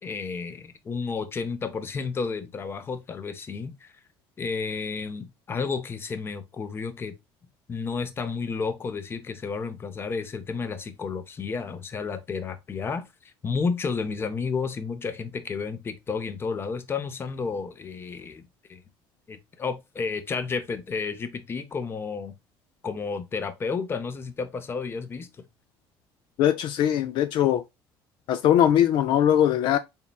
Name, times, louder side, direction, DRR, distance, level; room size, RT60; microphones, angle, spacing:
voice 1, 0.0-3.9 4.4-7.1 7.7-18.8 19.3-22.3 22.8-25.3, left 5 dB, 25° left, 0.7 m, -31 dB
voice 2, 26.4-27.6 28.3-29.8, left 10 dB, 65° left, 0.4 m, -21 dB
4.1 x 3.7 x 2.3 m
cardioid pair, 140°, 9 cm